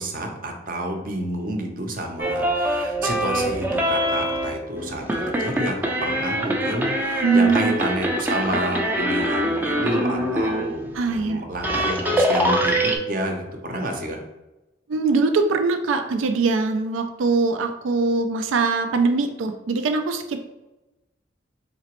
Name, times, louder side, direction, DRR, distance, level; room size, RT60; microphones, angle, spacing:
voice 1, 0.0-14.2, right 1 dB, 45° right, 2 dB, 0.6 m, -29 dB
sound 1, 2.2-10.7 11.2-11.3 11.5-13.0, equal, 10° right, 0.3 m, -24 dB
voice 2, 7.2-7.7 10.9-11.4 14.9-20.4, right 4 dB, 90° right, 7 dB, 0.4 m, -22 dB
4.1 x 2.9 x 3.0 m, 1.0 s
head